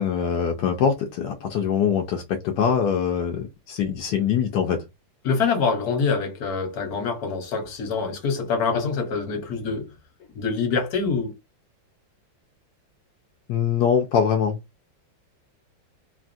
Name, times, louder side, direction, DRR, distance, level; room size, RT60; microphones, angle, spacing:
voice 1, 0.0-4.8 13.5-14.6, left 7 dB, 75° left, 1.0 m, -23 dB
voice 2, 5.2-9.9 10.3-11.3, left 5 dB, 55° left, 1.4 m, -25 dB
3.3 x 2.3 x 2.5 m
omnidirectional pair, 2.1 m